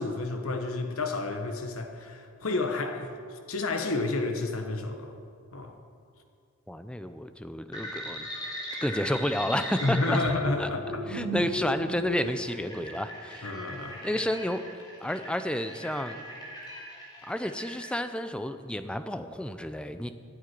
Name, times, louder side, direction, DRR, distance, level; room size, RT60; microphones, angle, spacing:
voice 1, 0.0-5.2 5.5-5.8 9.8-11.0 13.4-14.1, left 2 dB, 85° left, 5 dB, 1.3 m, -31 dB
voice 2, 6.7-8.3 8.8-10.2 10.6-10.7 11.1-13.5 14.0-14.6 15.0-16.2 17.3-20.1, equal, 5° left, 9 dB, 0.5 m, -31 dB
sound 1, 7.7-17.9, equal, 20° left, 3.6 m, -37 dB
9.7 x 8.9 x 10.0 m, 2.3 s
head